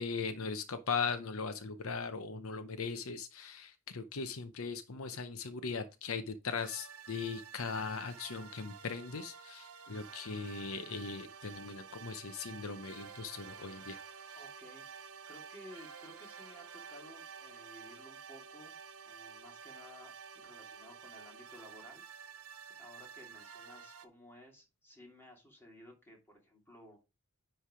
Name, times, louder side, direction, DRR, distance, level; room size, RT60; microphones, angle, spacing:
voice 1, 0.0-14.0, left 5 dB, 70° left, 0.7 m, -39 dB
sound 1, 6.6-24.1, right 6 dB, 80° right, 0.8 m, -51 dB
voice 2, 14.4-18.7 19.0-22.2 22.8-27.0, equal, 10° left, 2.5 m, -56 dB
10.0 x 3.3 x 4.8 m
head